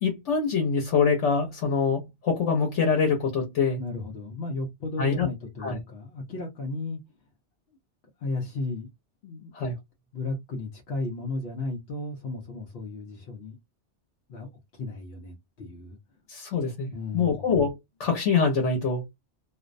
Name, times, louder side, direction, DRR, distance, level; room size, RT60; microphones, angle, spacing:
voice 1, 0.0-3.8 5.0-5.3 5.6-5.8 9.5-9.7 16.3-19.1, left 5 dB, 85° left, 1.1 m, -25 dB
voice 2, 3.8-7.0 8.2-8.9 9.2-9.5 10.1-13.6 14.3-16.0 16.9-17.5, left 2 dB, 65° left, 0.8 m, -34 dB
2.5 x 2.1 x 2.4 m
omnidirectional pair, 1.2 m